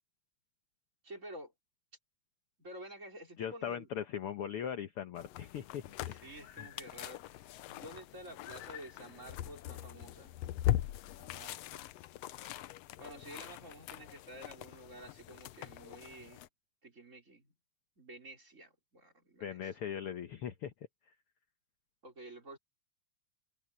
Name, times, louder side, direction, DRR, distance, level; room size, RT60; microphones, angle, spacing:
voice 1, 1.0-1.5 2.6-3.9 5.8-10.4 11.1-11.9 13.0-16.4 16.8-17.5 18.0-19.7 22.0-22.6, right 1 dB, 20° right, 4.9 m, -51 dB
voice 2, 3.4-6.7 19.4-20.7, left 9 dB, 65° left, 1.5 m, -40 dB
sound 1, 5.2-16.5, left 13 dB, 80° left, 1.4 m, -41 dB
omnidirectional pair, 3.6 m